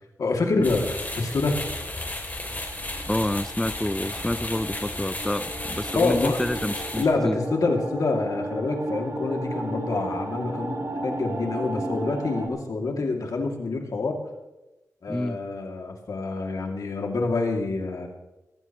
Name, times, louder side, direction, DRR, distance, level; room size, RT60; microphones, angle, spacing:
voice 1, 0.2-1.6 5.9-6.4 7.0-14.2 15.0-18.1, left 3 dB, 70° left, 2 dB, 2.5 m, -26 dB
sound 1, 0.6-7.0, left 2 dB, 30° left, 3.0 m, -34 dB
sound 2, 2.5-12.5, right 1 dB, 50° right, 2.9 m, -34 dB
voice 2, 3.1-7.4 15.1-15.4, left 1 dB, 5° left, 14 dB, 0.4 m, -28 dB
17.5 x 14.5 x 3.1 m, 1.0 s
cardioid pair, 65°, 6 cm